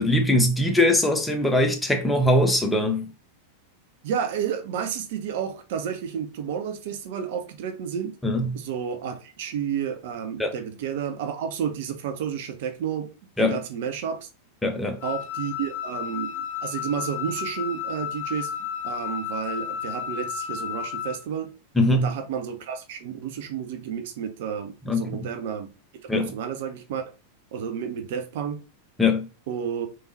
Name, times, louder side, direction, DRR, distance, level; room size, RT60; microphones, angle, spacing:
voice 1, 0.0-3.1 8.2-8.6 10.4-10.5 13.4-13.6 14.6-15.0 21.8-22.1 24.9-25.2 26.1-26.3 29.0-29.3, left 1 dB, 5° left, 0.8 m, -21 dB
voice 2, 4.0-8.2 8.5-13.1 13.4-14.3 15.0-18.5 18.8-21.5 21.9-25.7 26.1-27.0 27.5-28.6 29.5-29.9, right 8 dB, 50° right, 0.5 m, -31 dB
Wind instrument woodwind instrument, 15.0-21.2, left 8 dB, 50° left, 0.9 m, -32 dB
3.5 x 3.1 x 2.7 m
figure-of-eight pair, 90°, 0 cm